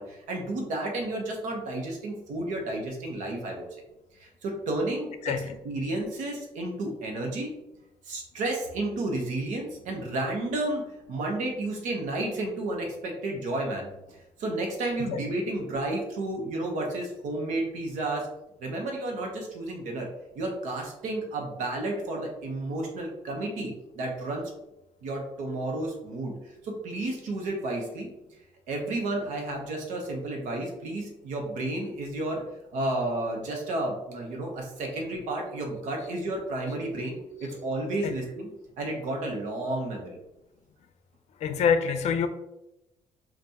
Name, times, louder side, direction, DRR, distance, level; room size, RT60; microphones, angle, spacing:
voice 1, 0.0-3.6 4.1-5.3 5.6-7.5 8.0-10.8 11.1-18.3 18.6-20.1 20.3-24.5 25.0-26.3 26.6-28.1 28.7-32.4 32.7-38.5 38.8-40.2, right 2 dB, 85° right, 1 dB, 1.0 m, -32 dB
voice 2, 5.2-5.6 15.1-15.2 38.0-38.1 41.4-42.3, left 6 dB, 65° left, 9 dB, 0.5 m, -25 dB
5.4 x 2.6 x 2.9 m, 0.92 s
cardioid pair, 100°, 12 cm